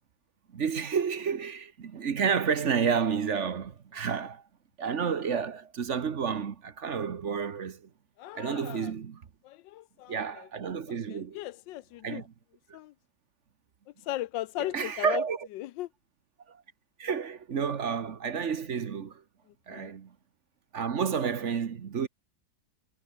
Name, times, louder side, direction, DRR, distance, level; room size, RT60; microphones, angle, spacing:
voice 1, 0.5-4.4 4.8-7.9 8.3-9.2 10.1-11.4 12.0-12.3 14.6-15.5 16.5-16.6 17.0-19.2 19.7-20.1 20.7-22.1, right 6 dB, 45° right, 1.2 m, -30 dB
voice 2, 8.2-8.9 9.4-10.5 10.9-12.2 12.7-12.9 14.0-15.2 15.5-15.9 19.7-19.9, left 15 dB, 80° left, 1.3 m, -37 dB
omnidirectional pair, 2.1 m